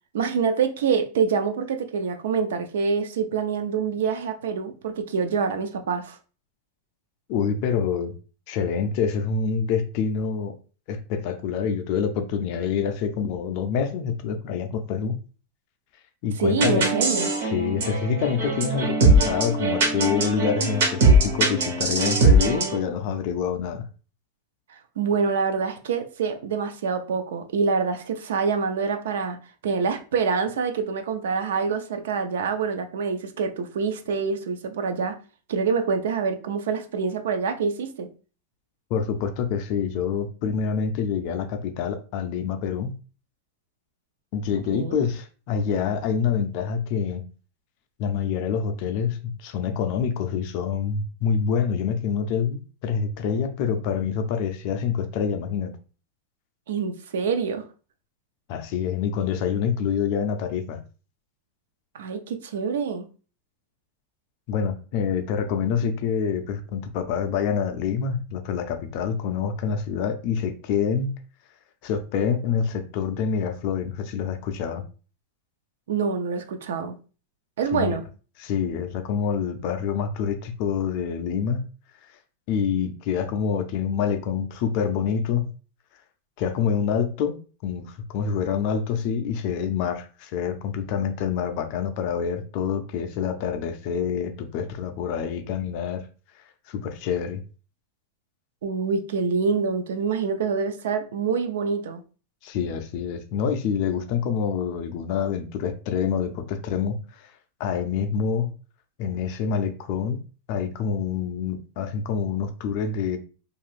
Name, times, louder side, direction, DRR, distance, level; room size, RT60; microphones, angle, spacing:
voice 1, 0.1-6.2 16.4-17.3 24.7-29.4 29.6-35.2 35.5-38.1 44.7-45.0 56.7-57.7 61.9-63.1 75.9-77.0 77.6-78.0 98.6-102.0, right 5 dB, 80° right, 0.4 m, -26 dB
voice 2, 7.3-8.1 8.5-10.6 10.9-15.2 16.2-16.8 17.5-23.9 38.9-42.9 44.3-47.2 48.0-55.7 58.5-60.8 64.5-71.1 71.8-74.8 77.7-78.0 78.4-81.6 82.5-85.5 86.4-96.0 96.7-97.4 102.4-107.0 107.6-108.5 109.0-110.2 110.5-113.2, left 7 dB, 35° left, 0.3 m, -26 dB
sound 1, 16.6-22.8, right 2 dB, 65° right, 0.9 m, -21 dB
2.6 x 2.4 x 3.2 m
supercardioid pair, 180°, 0 cm